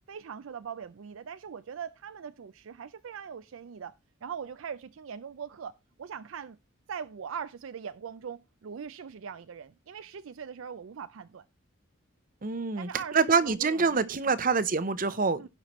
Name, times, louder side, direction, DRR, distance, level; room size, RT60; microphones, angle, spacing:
voice 1, 0.1-3.9 4.2-5.7 6.0-6.6 6.9-11.4 12.8-14.6 15.4-15.5, right 7 dB, 75° right, 0.4 m, -41 dB
voice 2, 12.4-15.5, right 4 dB, 40° right, 0.7 m, -26 dB
16.5 x 5.8 x 3.1 m
head